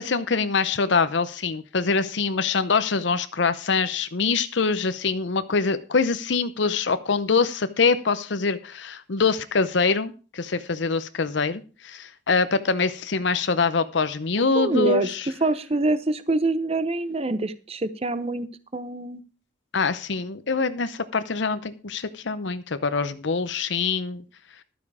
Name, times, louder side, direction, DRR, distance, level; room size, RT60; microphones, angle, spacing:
voice 1, 0.0-15.3 19.7-24.2, left 4 dB, 65° left, 12 dB, 0.7 m, -24 dB
voice 2, 14.5-15.1 15.4-18.5 18.7-19.2, right 2 dB, 30° right, 13 dB, 0.8 m, -25 dB
12.5 x 8.6 x 4.8 m, 0.36 s
head